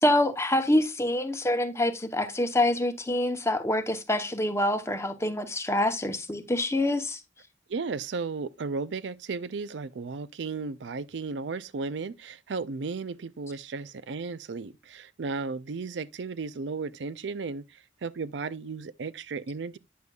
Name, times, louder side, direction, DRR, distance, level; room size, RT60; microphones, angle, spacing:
voice 1, 0.0-7.2, left 1 dB, 15° left, 0.9 m, -26 dB
voice 2, 7.7-19.8, right 4 dB, 75° right, 0.5 m, -34 dB
9.4 x 6.9 x 2.3 m
head